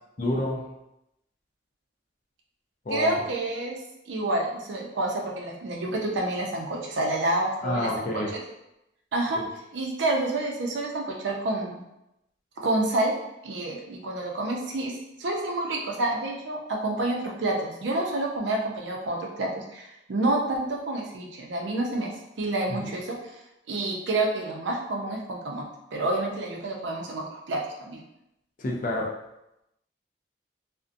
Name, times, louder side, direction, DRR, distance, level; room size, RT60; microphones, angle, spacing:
voice 1, 0.2-0.7 2.9-3.2 7.6-8.3 9.4-9.5 22.7-22.9 28.6-29.1, left 1 dB, 45° left, -1 dB, 0.4 m, -29 dB
voice 2, 2.9-3.8 4.1-8.4 9.1-9.4 9.7-11.8 12.6-13.1 13.4-14.9 15.2-22.1 22.4-23.2 23.7-28.0, right 2 dB, 80° right, 0 dB, 0.5 m, -28 dB
2.5 x 2.1 x 2.5 m, 0.88 s
head